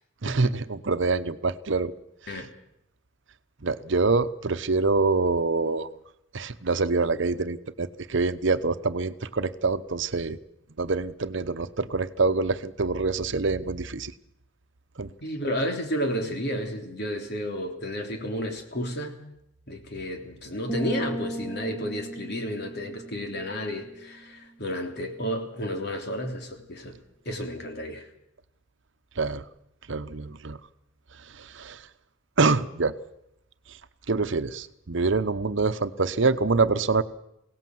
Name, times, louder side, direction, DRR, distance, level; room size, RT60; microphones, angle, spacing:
voice 1, 0.2-1.9 3.6-5.9 6.3-10.4 10.8-14.1 15.0-15.1 29.2-29.4 29.9-30.6 31.3-31.8 32.4-32.9 34.1-37.0, right 3 dB, 65° right, 12 dB, 0.9 m, -25 dB
voice 2, 15.2-19.2 19.7-27.0 27.2-28.1, equal, 60° left, 4 dB, 3.2 m, -32 dB
sound 1, 20.7-24.4, right 2 dB, 10° left, 1.3 m, -36 dB
22.5 x 17.5 x 7.8 m, 0.82 s
head